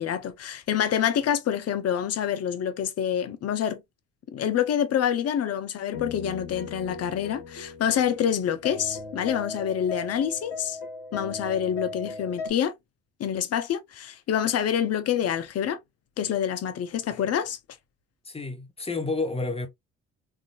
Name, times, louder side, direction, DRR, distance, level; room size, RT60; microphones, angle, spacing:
voice 1, 0.0-3.8 4.3-10.8 11.1-12.7 13.2-15.8 16.2-17.6, left 9 dB, 50° left, 0.8 m, -27 dB
sound 1, 5.9-12.5, left 4 dB, 75° left, 1.5 m, -38 dB
voice 2, 18.2-19.7, left 3 dB, 20° left, 1.0 m, -30 dB
3.5 x 2.6 x 2.4 m
supercardioid pair, 75°, 33 cm